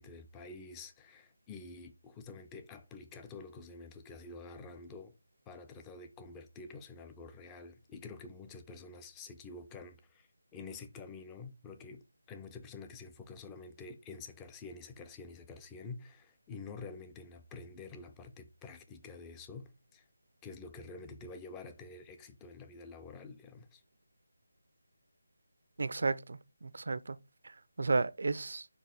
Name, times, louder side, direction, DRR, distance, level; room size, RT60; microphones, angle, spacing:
voice 1, 0.0-5.2 5.5-20.1 20.4-23.8, left 4 dB, 10° left, 0.3 m, -48 dB
voice 2, 25.8-27.2 27.4-28.7, right 3 dB, 60° right, 0.3 m, -33 dB
4.5 x 2.9 x 4.0 m
figure-of-eight pair, 170°, 0 cm